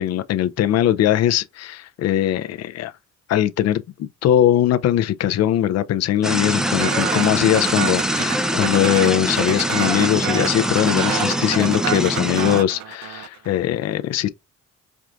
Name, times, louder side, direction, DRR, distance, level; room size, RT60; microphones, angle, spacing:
voice 1, 0.0-2.9 3.3-14.3, left 11 dB, 60° left, 0.5 m, -20 dB
Night time roadworks, 6.2-12.6, equal, ahead, 0.5 m, -23 dB
sound 1, 6.8-13.5, right 12 dB, 70° right, 0.4 m, -29 dB
4.5 x 2.5 x 2.4 m
cardioid pair, 90°, 30 cm